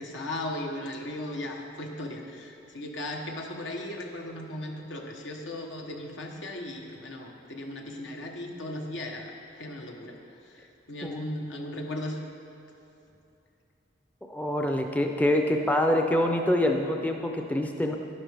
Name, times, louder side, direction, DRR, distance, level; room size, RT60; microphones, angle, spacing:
voice 1, 0.0-10.2 10.5-12.2, left 1 dB, 75° left, 1 dB, 1.2 m, -37 dB
voice 2, 14.3-18.0, left 1 dB, 10° left, 3 dB, 0.5 m, -25 dB
11.0 x 11.0 x 3.4 m, 2.8 s
head